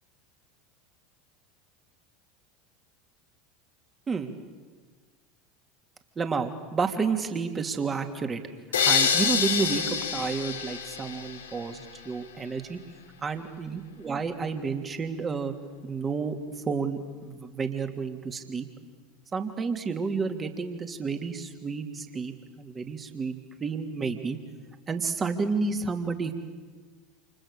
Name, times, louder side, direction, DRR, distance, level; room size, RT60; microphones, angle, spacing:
voice 1, 6.2-8.4 8.8-9.8 10.1-12.8 13.2-15.5 15.8-16.3 16.7-18.7 19.3-24.4 24.9-26.3, right 5 dB, 25° right, 5 dB, 3.1 m, -30 dB
sound 1, 8.7-11.7, left 6 dB, 75° left, 2.9 m, -26 dB
29.5 x 28.5 x 6.9 m, 1.4 s
figure-of-eight pair, 75°, 0 cm